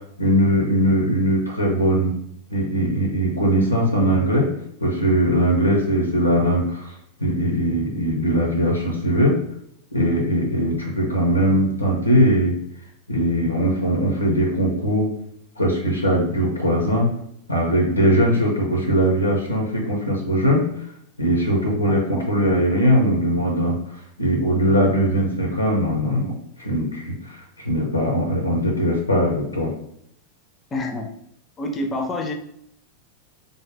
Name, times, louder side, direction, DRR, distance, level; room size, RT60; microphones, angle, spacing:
voice 1, 0.2-2.1 2.5-4.5 4.8-6.9 7.2-9.4 9.9-12.5 13.1-15.1 15.6-17.1 17.5-20.7 21.2-23.8 24.2-29.7, equal, 85° left, 1 dB, 0.6 m, -20 dB
voice 2, 30.7-31.1 31.6-32.3, left 2 dB, 20° left, 4 dB, 0.5 m, -27 dB
3.5 x 2.2 x 3.3 m, 0.72 s
figure-of-eight pair, 90°, 0 cm